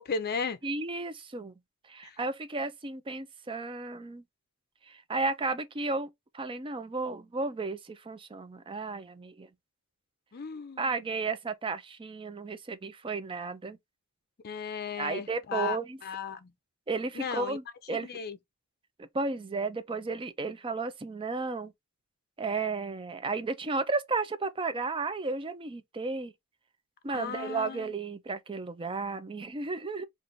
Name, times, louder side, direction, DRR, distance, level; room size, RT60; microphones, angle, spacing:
voice 1, 0.0-0.6 2.0-2.2 10.3-10.8 14.4-16.5 17.2-17.6 17.9-18.4 27.1-27.9, left 6 dB, 45° left, 0.5 m, -35 dB
voice 2, 0.6-1.5 1.9-4.2 4.9-9.5 10.8-13.8 15.0-16.0 16.9-18.1 19.0-21.7 22.4-26.3 27.0-30.0, right 3 dB, 25° right, 0.5 m, -33 dB
3.3 x 2.5 x 3.8 m
head